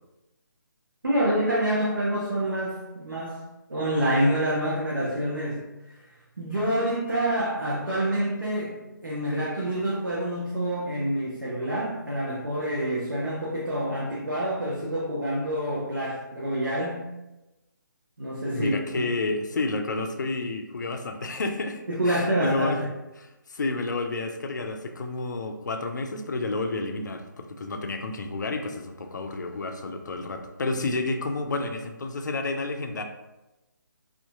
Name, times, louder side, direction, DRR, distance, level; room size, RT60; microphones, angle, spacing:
voice 1, 1.0-3.4 3.7-5.6 5.9-6.0 6.4-17.1 18.2-19.0 21.9-22.9, right 1 dB, 80° right, -5 dB, 0.6 m, -27 dB
voice 2, 18.5-22.8 23.2-33.0, left 3 dB, 65° left, 5 dB, 0.4 m, -30 dB
2.6 x 2.4 x 2.3 m, 1.0 s
figure-of-eight pair, 145°, 11 cm